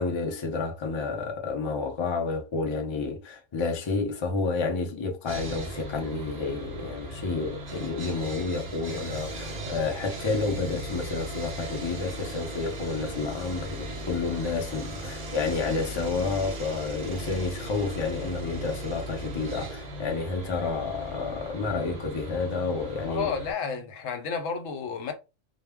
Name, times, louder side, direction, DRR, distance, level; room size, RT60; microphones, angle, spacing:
voice 1, 0.0-23.3, left 4 dB, 40° left, 0.4 m, -30 dB
Sawing, 5.3-23.5, right 1 dB, 45° right, 0.6 m, -37 dB
voice 2, 23.1-25.1, left 6 dB, 85° left, 1.0 m, -31 dB
2.2 x 2.0 x 3.4 m
omnidirectional pair, 1.3 m